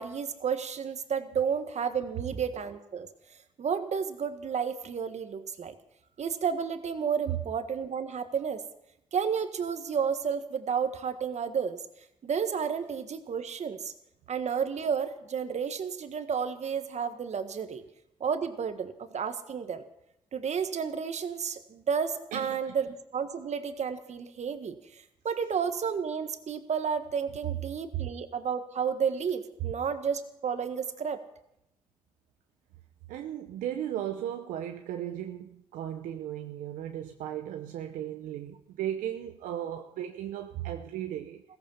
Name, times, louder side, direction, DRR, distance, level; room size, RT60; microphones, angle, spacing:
voice 1, 0.0-3.1 3.6-5.7 6.2-8.6 9.1-11.8 12.2-13.9 14.3-17.8 18.2-19.8 20.3-31.2, right 6 dB, 55° right, 9 dB, 1.6 m, -31 dB
voice 2, 22.3-22.7 27.9-28.1 33.1-41.4, right 11 dB, 80° right, 5 dB, 0.9 m, -36 dB
16.0 x 15.0 x 5.6 m, 0.81 s
supercardioid pair, 50°, 13 cm